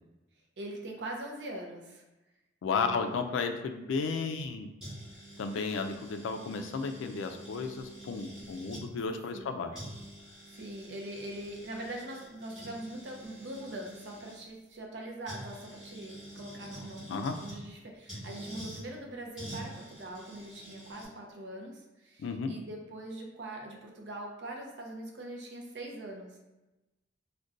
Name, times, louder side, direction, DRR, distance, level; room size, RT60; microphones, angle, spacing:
voice 1, 0.6-2.0 2.7-3.2 9.3-9.7 10.5-26.4, right 1 dB, 65° right, 1 dB, 0.5 m, -42 dB
voice 2, 2.6-4.7 5.4-9.7 17.1-17.3 22.2-22.6, left 5 dB, 85° left, 7 dB, 0.3 m, -33 dB
sound 1, 4.8-8.9 9.4-9.5 9.7-14.4 15.3-17.6 18.1-18.8 19.4-21.1, right 1 dB, 5° right, 1.0 m, -46 dB
2.5 x 2.2 x 3.7 m, 1.0 s
head